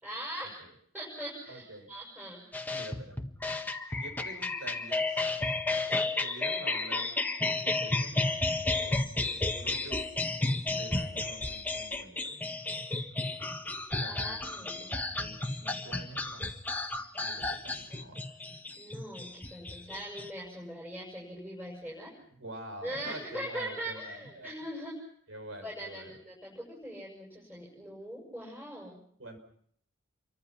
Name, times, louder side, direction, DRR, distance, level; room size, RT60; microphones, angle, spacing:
voice 1, 0.0-0.6 0.9-2.4 14.1-15.0 18.8-22.1 22.8-25.0 25.6-29.0, right 1 dB, 10° right, -3 dB, 7.1 m, -41 dB
voice 2, 1.5-1.9 2.6-3.2 3.9-5.2 5.9-7.1 7.4-10.0 10.6-12.4 13.9-16.6 17.1-18.2 22.3-24.5 25.3-26.1 29.2-29.4, right 1 dB, 85° right, 7 dB, 6.2 m, -47 dB
sound 1, 2.5-20.3, left 2 dB, 10° left, 1.6 m, -32 dB
29.0 x 24.5 x 5.9 m, 0.64 s
head